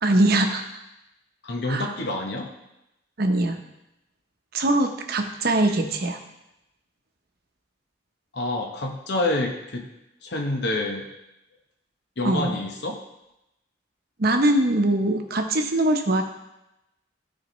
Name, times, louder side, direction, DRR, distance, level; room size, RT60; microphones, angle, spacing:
voice 1, 0.0-0.6 1.7-1.9 3.2-3.6 4.5-6.2 12.2-12.6 14.2-16.2, right 1 dB, 55° right, 4 dB, 0.8 m, -22 dB
voice 2, 1.4-2.5 8.3-9.9 10.2-11.1 12.2-13.0, left 2 dB, 60° left, 1 dB, 0.9 m, -27 dB
12.0 x 4.3 x 3.1 m, 0.89 s
head